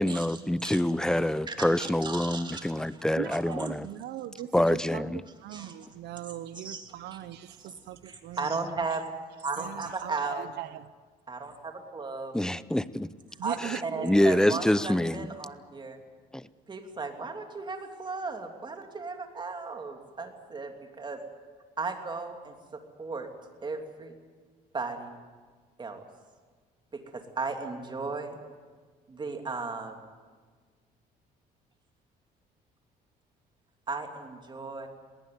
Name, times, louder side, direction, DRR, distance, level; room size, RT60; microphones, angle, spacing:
voice 1, 0.0-3.9 4.5-5.2 12.3-13.1 13.6-15.3 16.3-16.5, left 1 dB, 5° left, 0.6 m, -26 dB
voice 2, 1.1-3.0 3.6-3.7 5.5-5.8 6.6-7.2 7.6-9.1 9.4-10.5 11.3-12.4 13.4-16.0 16.7-21.2 21.8-23.3 23.6-24.2 24.7-25.2 25.8-26.0 26.9-28.4 29.1-30.0 33.9-34.9, right 4 dB, 25° right, 2.9 m, -36 dB
voice 3, 3.2-8.6 9.6-10.9 13.4-14.6, right 12 dB, 80° right, 0.9 m, -40 dB
20.5 x 18.5 x 9.5 m
cardioid pair, 110°, 17 cm